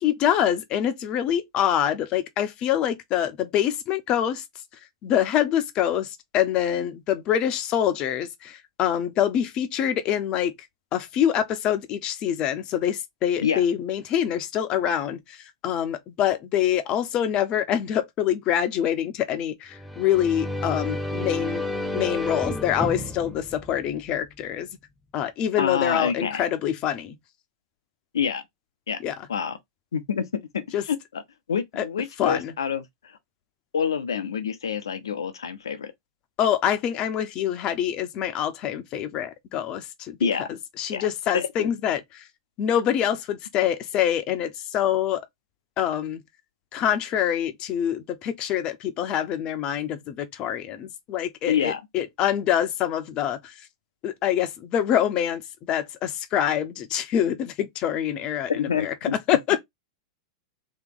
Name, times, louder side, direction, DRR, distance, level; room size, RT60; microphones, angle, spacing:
voice 1, 0.0-4.4 5.0-10.5 10.9-15.4 15.6-21.6 21.9-24.7 25.1-27.2 29.0-29.3 30.7-30.8 31.8-31.9 32.2-32.5 36.4-40.2 40.8-42.2 42.6-45.2 45.8-46.2 46.7-53.5 54.0-55.4 55.7-58.9 59.3-59.6, left 10 dB, 40° left, 0.8 m, -25 dB
sound 1, 19.7-24.5, left 1 dB, ahead, 0.8 m, -31 dB
voice 2, 25.6-26.4 28.1-28.4 28.9-29.0 29.3-29.6 29.9-30.3 30.5-31.0 31.5-32.8 33.7-35.9 40.2-40.5 40.9-41.0 41.3-41.7 51.5-51.8 58.5-59.2, left 7 dB, 75° left, 0.8 m, -27 dB
3.3 x 3.1 x 3.8 m
figure-of-eight pair, 100°, 2 cm